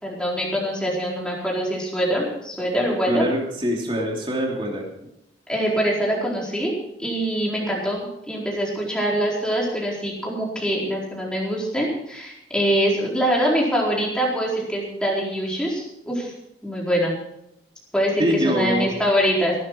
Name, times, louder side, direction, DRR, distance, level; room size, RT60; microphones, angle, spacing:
voice 1, 0.0-3.3 5.5-6.7 7.0-16.3 16.6-17.1 17.9-19.6, equal, 5° left, -4 dB, 4.4 m, -24 dB
voice 2, 3.1-4.8 18.2-18.9, equal, 30° right, -1 dB, 3.3 m, -23 dB
18.0 x 12.0 x 4.8 m, 0.80 s
head